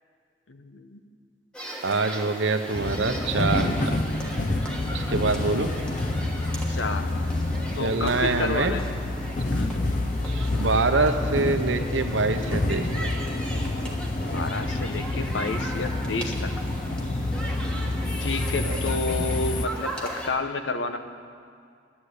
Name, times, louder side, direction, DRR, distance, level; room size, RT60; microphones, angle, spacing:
voice 1, 0.5-1.0 6.7-7.1 7.7-8.8 9.5-9.7 14.3-16.5 18.2-21.0, left 3 dB, 85° left, 8 dB, 0.9 m, -30 dB
sound 1, 1.5-20.3, right 1 dB, 5° left, 1.3 m, -38 dB
voice 2, 1.8-3.7 4.9-5.7 7.8-8.7 10.2-13.1 18.6-18.8, right 3 dB, 85° right, 7 dB, 0.9 m, -25 dB
sound 2, 2.7-19.7, left 2 dB, 45° left, 0.6 m, -28 dB
10.5 x 10.5 x 8.3 m, 2.2 s
head